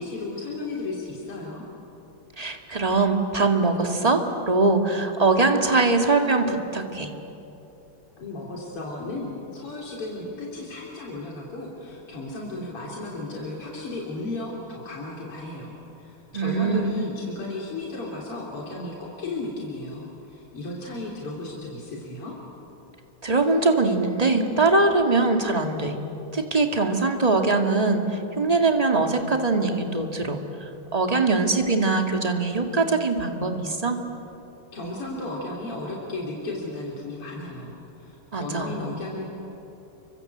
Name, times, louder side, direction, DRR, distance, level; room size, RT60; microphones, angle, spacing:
voice 1, 0.0-1.6 8.2-22.3 34.7-39.2, left 2 dB, 90° left, -3 dB, 4.4 m, -34 dB
voice 2, 2.4-7.1 16.3-17.0 23.2-25.9 26.3-28.0 28.4-30.4 30.9-34.0 38.3-38.7, right 3 dB, 20° right, 4 dB, 2.0 m, -22 dB
30.0 x 25.0 x 8.0 m, 3.0 s
omnidirectional pair, 2.4 m